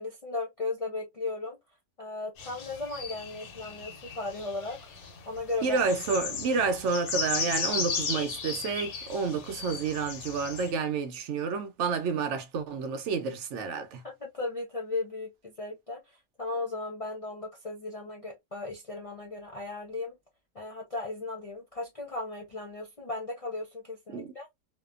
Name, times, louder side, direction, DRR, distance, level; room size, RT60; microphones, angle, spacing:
voice 1, 0.0-1.6 2.0-4.8 5.3-5.8 14.0-20.2 20.5-24.5, left 3 dB, 65° left, 0.3 m, -36 dB
sound 1, 2.4-10.7, left 5 dB, 85° left, 1.2 m, -36 dB
voice 2, 5.6-14.0 24.1-24.3, right 5 dB, 65° right, 0.8 m, -29 dB
2.7 x 2.2 x 2.3 m
omnidirectional pair, 1.5 m